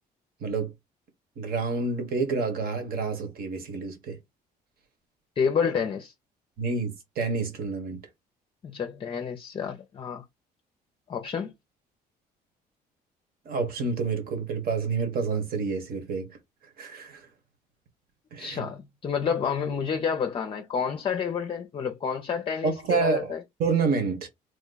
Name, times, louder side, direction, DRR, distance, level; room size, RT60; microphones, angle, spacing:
voice 1, 0.4-0.7 1.4-4.2 6.6-8.0 13.4-16.4 16.8-17.3 18.3-18.6 22.6-23.3 23.6-24.3, right 4 dB, 60° right, 1.4 m, -28 dB
voice 2, 5.4-6.1 8.6-10.2 11.1-11.5 18.4-23.4, left 6 dB, 30° left, 0.5 m, -29 dB
3.0 x 2.2 x 3.9 m
cardioid pair, 110°, 17 cm